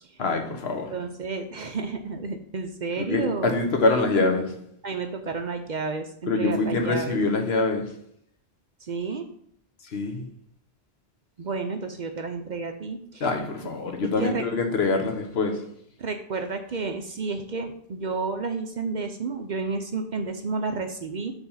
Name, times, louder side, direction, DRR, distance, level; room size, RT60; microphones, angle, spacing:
voice 1, 0.2-0.9 3.0-4.7 6.3-8.0 9.8-10.3 13.2-15.7, left 3 dB, 70° left, 1.2 m, -25 dB
voice 2, 0.9-3.6 4.8-7.2 8.8-9.3 11.4-13.3 13.8-14.4 16.0-21.3, right 4 dB, 50° right, 0.6 m, -31 dB
7.0 x 3.5 x 5.5 m
omnidirectional pair, 1.1 m